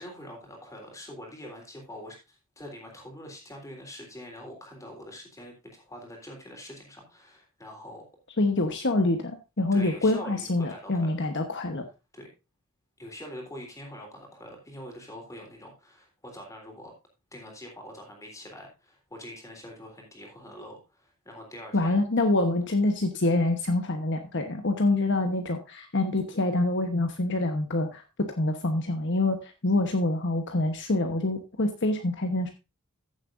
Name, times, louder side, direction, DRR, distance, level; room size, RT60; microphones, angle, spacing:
voice 1, 0.0-8.0 9.7-11.2 12.1-12.3 13.0-16.9 17.3-22.0, equal, 15° left, 1 dB, 3.5 m, -44 dB
voice 2, 8.4-11.8 21.7-28.0 28.3-32.5, left 2 dB, 55° left, 5 dB, 1.1 m, -26 dB
15.0 x 7.5 x 2.6 m, 0.26 s
head